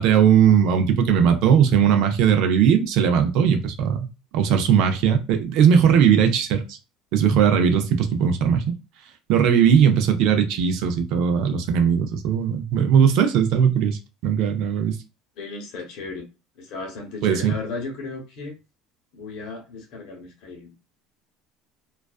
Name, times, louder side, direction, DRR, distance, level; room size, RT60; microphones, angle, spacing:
voice 1, 0.0-4.1 4.3-6.8 7.1-8.7 9.3-15.0 17.2-17.5, right 8 dB, 60° right, 0.5 m, -19 dB
voice 2, 15.4-16.3 16.6-18.6 19.1-20.7, left 3 dB, 60° left, 0.8 m, -35 dB
2.3 x 2.3 x 2.3 m
cardioid pair, 160°, 0 cm